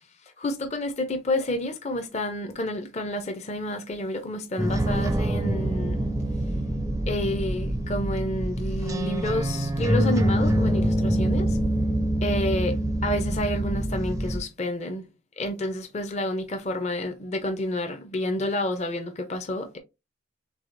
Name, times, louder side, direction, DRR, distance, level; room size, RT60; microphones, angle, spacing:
voice 1, 0.4-6.1 7.1-11.6 12.2-15.0 15.4-19.8, left 1 dB, 30° left, 0.5 m, -29 dB
sound 1, 4.6-14.4, right 1 dB, 15° right, 0.4 m, -25 dB
4.7 x 3.5 x 2.5 m
head